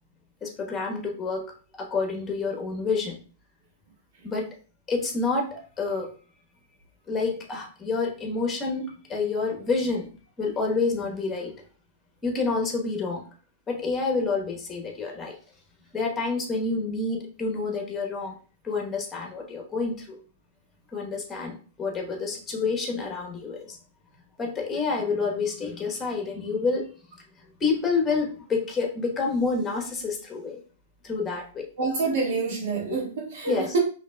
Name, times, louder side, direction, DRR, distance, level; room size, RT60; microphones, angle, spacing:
voice 1, 0.4-1.5 1.8-3.2 4.2-4.5 4.9-6.1 7.1-10.1 10.4-11.5 12.2-13.3 13.7-15.3 15.9-18.3 18.6-20.2 20.9-23.8 24.4-26.9 27.6-30.6 31.0-31.7 33.5-33.7, left 4 dB, 15° left, 1.1 m, -28 dB
voice 2, 31.8-33.8, right 3 dB, 65° right, 1.5 m, -27 dB
4.9 x 3.0 x 2.2 m
hypercardioid pair, 150°, 0 cm